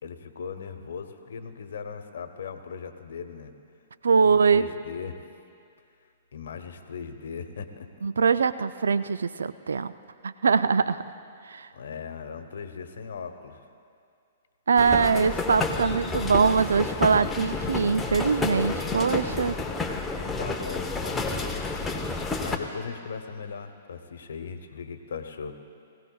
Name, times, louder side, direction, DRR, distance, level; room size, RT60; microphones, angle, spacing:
voice 1, 0.0-3.5 4.2-5.2 6.3-7.9 11.7-13.6 18.7-19.5 20.4-21.5 22.4-25.6, left 6 dB, 70° left, 8 dB, 0.9 m, -38 dB
voice 2, 4.0-4.7 8.0-9.9 10.2-11.0 11.5-11.7 14.7-19.5, right 5 dB, 75° right, 14 dB, 0.3 m, -22 dB
sound 1, 14.8-22.6, left 3 dB, 10° left, 1.0 m, -30 dB
21.5 x 16.5 x 2.3 m, 2.4 s
figure-of-eight pair, 115°, 0 cm